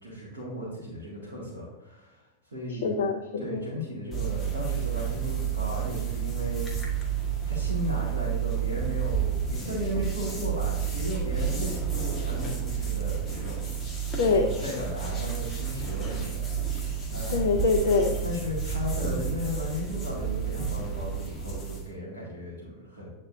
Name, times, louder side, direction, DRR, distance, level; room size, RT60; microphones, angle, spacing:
voice 1, 0.0-3.0 3.4-6.7 7.4-13.8 14.2-17.6 18.2-23.1, left 1 dB, 70° right, -7 dB, 2.0 m, -36 dB
voice 2, 2.8-3.6 14.2-14.6 17.3-18.2, left 4 dB, 55° left, 4 dB, 0.6 m, -24 dB
sound 1, 4.1-21.9, right 8 dB, 15° left, 1.6 m, -30 dB
9.5 x 4.3 x 2.6 m, 0.99 s
figure-of-eight pair, 90°, 0 cm